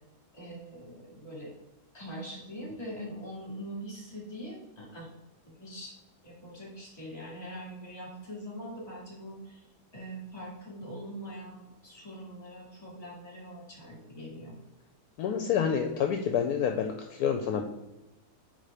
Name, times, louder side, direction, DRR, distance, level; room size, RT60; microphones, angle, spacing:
voice 1, 0.3-1.5 1.9-5.1 5.4-5.9 6.2-9.6 9.9-14.6, equal, 25° left, -4 dB, 2.4 m, -42 dB
voice 2, 15.2-17.8, left 7 dB, 75° left, 4 dB, 1.1 m, -28 dB
4.9 x 3.9 x 5.5 m, 1.0 s
omnidirectional pair, 1.7 m